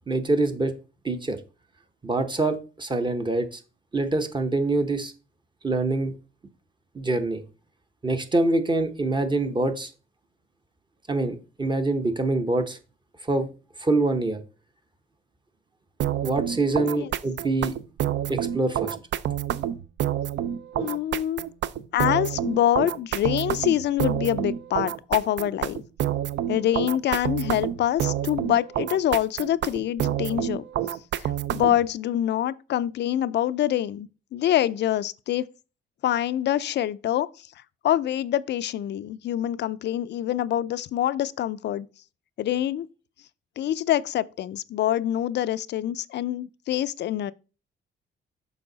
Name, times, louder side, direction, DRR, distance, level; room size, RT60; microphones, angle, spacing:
voice 1, 0.1-0.7 1.0-1.4 2.0-3.6 3.9-5.1 5.6-6.1 6.9-7.4 8.0-9.9 11.1-12.8 13.2-13.5 13.8-14.4 16.2-17.7 18.3-19.0, right 2 dB, 25° right, 0.8 m, -25 dB
sound 1, 16.0-31.9, right 11 dB, 65° right, 0.5 m, -28 dB
voice 2, 16.7-17.1 20.7-21.4 21.9-25.8 26.5-30.6 31.2-35.5 36.0-37.5 37.8-41.9 42.4-42.9 43.6-47.3, left 12 dB, 60° left, 0.4 m, -25 dB
7.0 x 4.6 x 3.9 m
cardioid pair, 90°, 20 cm